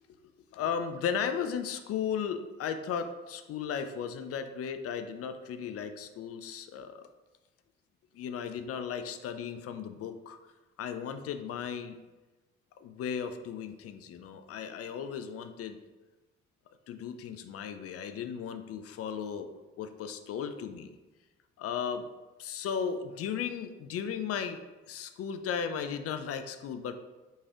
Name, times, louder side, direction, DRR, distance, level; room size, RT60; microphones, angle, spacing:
voice 1, 0.5-7.0 8.1-10.4 10.8-12.0 12.8-15.8 16.9-19.5 19.8-21.0 21.6-22.0 22.4-24.6 24.9-26.9, left 7 dB, 40° left, 9 dB, 0.4 m, -35 dB
5.3 x 3.1 x 2.4 m, 1.2 s
figure-of-eight pair, 40°, 36 cm